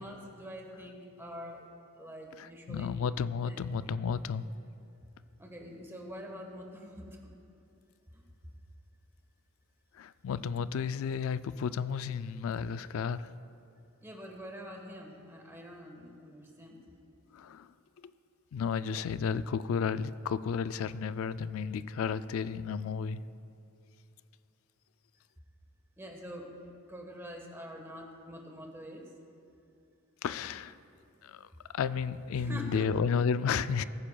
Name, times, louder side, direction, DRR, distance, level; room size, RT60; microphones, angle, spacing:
voice 1, 0.0-1.7 2.0-3.0 3.4-3.6 5.4-7.2 8.1-8.2 14.0-16.8 26.0-29.0 32.3-32.9, equal, 10° right, 1 dB, 1.3 m, -45 dB
voice 2, 2.4-4.5 9.9-13.3 17.3-18.1 18.5-23.2 30.2-30.8 31.2-33.8, left 6 dB, 65° left, 15 dB, 0.3 m, -32 dB
21.0 x 9.7 x 2.3 m, 2.7 s
head